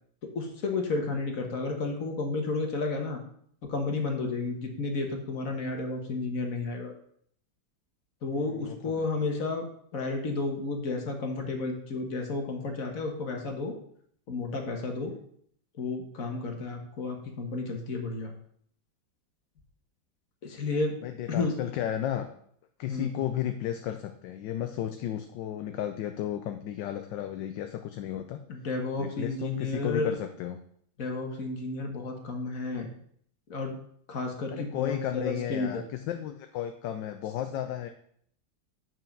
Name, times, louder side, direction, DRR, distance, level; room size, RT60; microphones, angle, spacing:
voice 1, 0.2-3.2 3.6-6.9 8.2-9.7 9.9-13.7 14.3-15.1 15.8-18.3 20.4-21.5 22.9-23.2 28.5-30.1 31.0-32.9 33.5-33.7 34.1-35.8, left 3 dB, 50° left, 3 dB, 1.5 m, -32 dB
voice 2, 8.4-9.1 15.0-15.2 21.0-22.3 22.8-28.4 29.0-30.6 34.5-37.9, left 11 dB, 80° left, 6 dB, 1.3 m, -33 dB
7.3 x 5.6 x 5.2 m, 0.64 s
omnidirectional pair, 2.0 m